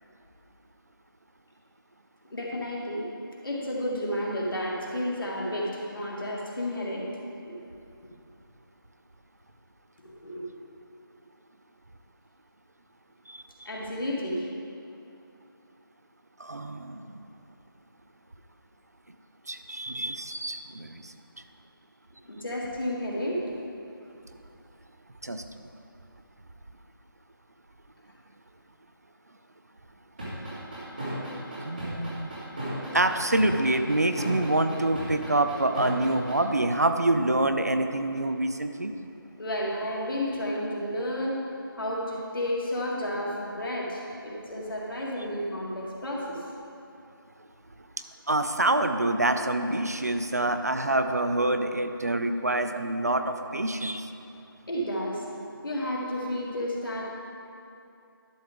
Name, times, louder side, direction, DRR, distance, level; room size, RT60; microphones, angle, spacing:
voice 1, 2.3-3.1 3.4-7.1 7.4-7.6 10.0-10.5 13.7-14.5 22.3-23.4 39.4-41.4 41.8-46.4 54.7-55.3 55.6-57.1, left 1 dB, 65° left, -3 dB, 2.0 m, -31 dB
voice 2, 16.4-17.0 19.5-21.1 25.2-25.4 31.6-32.3 32.9-38.9 48.3-54.1, right 1 dB, 45° right, 8 dB, 0.4 m, -26 dB
sound 1, 30.2-36.3, right 1 dB, 25° right, 1.9 m, -35 dB
11.5 x 6.7 x 3.6 m, 2.6 s
figure-of-eight pair, 175°, 12 cm